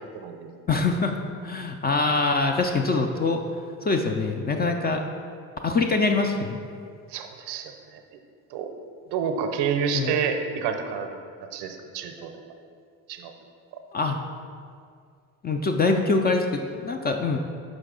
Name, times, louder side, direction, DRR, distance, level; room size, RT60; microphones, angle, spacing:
voice 1, 0.1-0.5 7.1-8.0 8.5-8.7 9.1-11.2 11.5-12.3 13.1-13.3, right 6 dB, 60° right, 6 dB, 0.7 m, -29 dB
voice 2, 0.7-1.1 1.4-3.4 3.8-5.0 5.6-6.6 9.9-10.1 13.9-14.2 15.4-17.4, left 3 dB, 20° left, 3 dB, 0.4 m, -24 dB
6.3 x 4.6 x 3.7 m, 2.2 s
hypercardioid pair, 55°, 46 cm